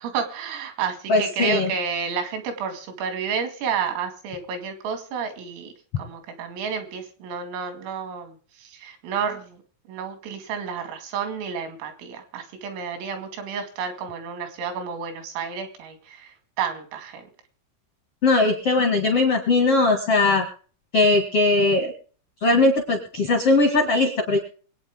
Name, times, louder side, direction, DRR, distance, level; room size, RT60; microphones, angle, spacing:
voice 1, 0.0-8.4 8.6-9.6 9.9-16.3 16.6-17.2, right 6 dB, 90° right, 6 dB, 5.0 m, -30 dB
voice 2, 1.1-1.7 18.2-20.4 20.9-21.9 22.4-24.4, left 2 dB, 60° left, 2 dB, 1.5 m, -19 dB
24.0 x 9.0 x 3.7 m, 0.42 s
omnidirectional pair, 5.7 m